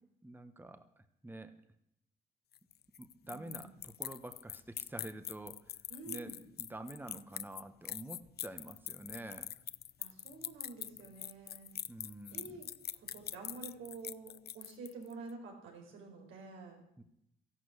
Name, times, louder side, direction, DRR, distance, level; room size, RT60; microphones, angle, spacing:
voice 1, 0.2-1.5 3.0-5.8 6.1-9.5 11.9-12.6 17.0-17.1, right 1 dB, 10° right, 9 dB, 1.2 m, -48 dB
sound 1, 2.5-15.1, left 11 dB, 55° left, 0.5 m, -43 dB
voice 2, 3.3-3.7 5.9-6.4 10.0-11.7 12.3-16.8, right 4 dB, 90° right, 2 dB, 4.5 m, -49 dB
13.5 x 12.0 x 8.1 m, 0.79 s
cardioid pair, 90°, 20 cm